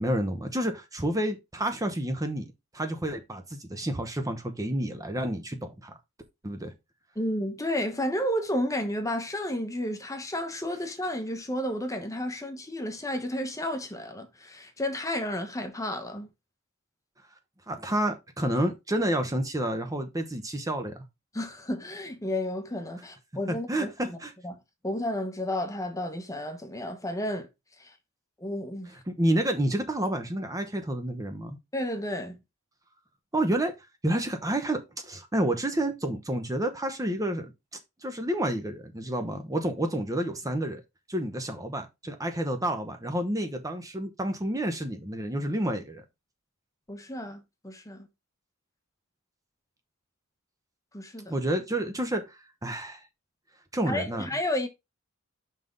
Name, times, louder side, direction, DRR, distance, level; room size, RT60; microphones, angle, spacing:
voice 1, 0.0-2.5 2.7-5.9 6.4-6.7 17.7-21.0 23.7-24.3 29.1-31.6 33.3-33.7 34.0-40.8 41.1-46.0 51.3-53.1 53.7-54.3, right 1 dB, 15° right, 0.8 m, -29 dB
voice 2, 7.2-16.3 21.3-24.2 24.4-24.5 24.8-27.5 27.8-27.9 28.4-28.9 31.7-32.4 46.9-48.1 50.9-51.3 53.9-54.7, left 1 dB, 15° left, 1.0 m, -32 dB
5.8 x 3.6 x 5.3 m
head